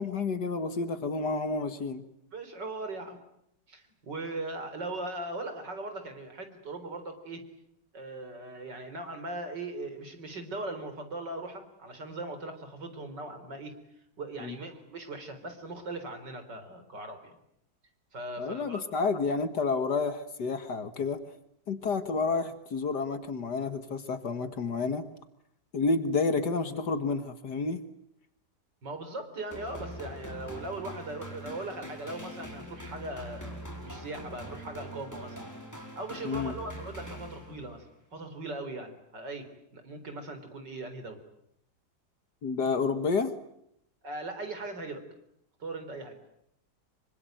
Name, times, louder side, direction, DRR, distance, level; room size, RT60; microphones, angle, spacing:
voice 1, 0.0-2.0 14.4-14.6 18.4-21.2 21.7-25.1 25.7-27.8 36.2-36.6 42.4-43.3, left 4 dB, 65° left, 10 dB, 2.2 m, -30 dB
voice 2, 2.3-3.2 3.7-7.4 7.9-13.8 14.2-17.4 18.1-18.9 28.8-35.4 36.0-37.9 38.1-41.2 44.0-45.0 45.6-46.2, right 2 dB, 75° right, 8 dB, 4.7 m, -39 dB
sound 1, 29.5-37.8, equal, 10° left, 5.0 m, -43 dB
26.0 x 24.0 x 9.2 m, 0.76 s
omnidirectional pair, 1.9 m